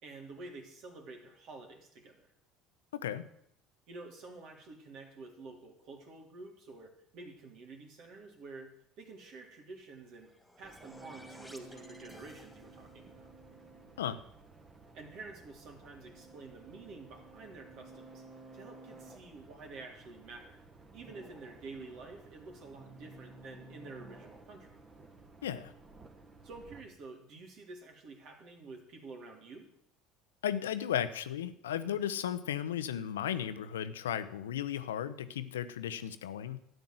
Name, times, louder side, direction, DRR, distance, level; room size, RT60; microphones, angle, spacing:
voice 1, 0.0-2.3 3.9-10.3 10.6-13.3 14.9-18.2 18.5-20.6 20.9-24.8 26.4-29.7, right 3 dB, 55° right, 2 dB, 3.4 m, -49 dB
voice 2, 2.9-3.2 14.0-14.2 25.4-25.7 30.4-36.6, left 10 dB, 80° left, 12 dB, 0.8 m, -35 dB
sound 1, 10.0-13.0, left 1 dB, 5° left, 2.9 m, -56 dB
sound 2, 10.6-26.8, right 3 dB, 30° right, 2.3 m, -54 dB
12.5 x 9.3 x 7.7 m, 0.72 s
hypercardioid pair, 65°, 0 cm